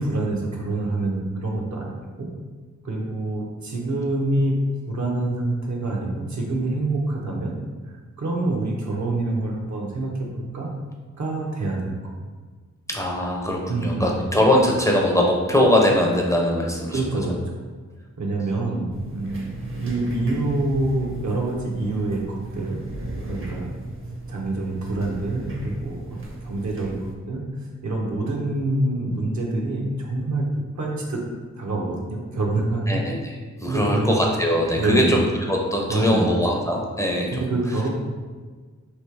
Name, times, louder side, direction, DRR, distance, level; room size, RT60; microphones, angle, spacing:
voice 1, 0.0-1.9 2.2-2.3 2.8-4.5 4.9-7.5 8.2-10.7 11.2-12.0 13.7-14.1 16.9-17.6 18.2-23.8 24.3-27.0 27.3-27.4 27.8-30.4 30.8-31.2 31.6-33.0 33.7-34.2 34.7-35.2 35.9-36.3 37.3-37.9, right 2 dB, 70° right, -2 dB, 0.9 m, -26 dB
voice 2, 12.9-17.4 32.9-37.5, left 1 dB, 10° left, -1 dB, 0.5 m, -21 dB
sound 1, 18.9-27.1, right 2 dB, 45° right, 0.7 m, -36 dB
3.2 x 2.9 x 4.6 m, 1.5 s
wide cardioid pair, 115°, 29 cm